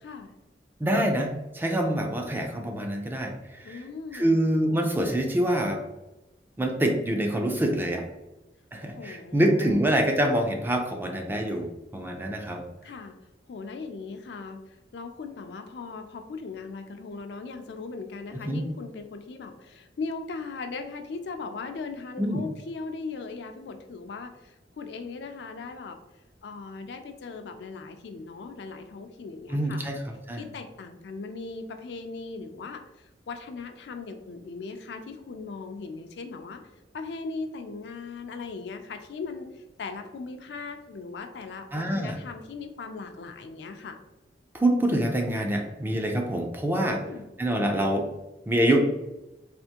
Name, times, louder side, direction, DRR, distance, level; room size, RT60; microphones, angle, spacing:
voice 1, 0.0-0.3 3.6-4.4 9.0-9.9 12.8-13.2 13.5-26.0 26.4-29.9 30.4-36.6 36.9-44.0 46.9-47.3, left 4 dB, 70° left, 6 dB, 0.4 m, -39 dB
voice 2, 0.8-3.8 4.1-5.8 6.6-8.0 8.7-12.6 18.3-18.6 22.2-22.4 29.5-30.0 30.3-30.4 41.7-42.2 44.5-47.0 47.4-48.1 48.5-48.9, right 1 dB, 10° right, 2 dB, 0.4 m, -25 dB
3.4 x 2.5 x 2.8 m, 1.0 s
head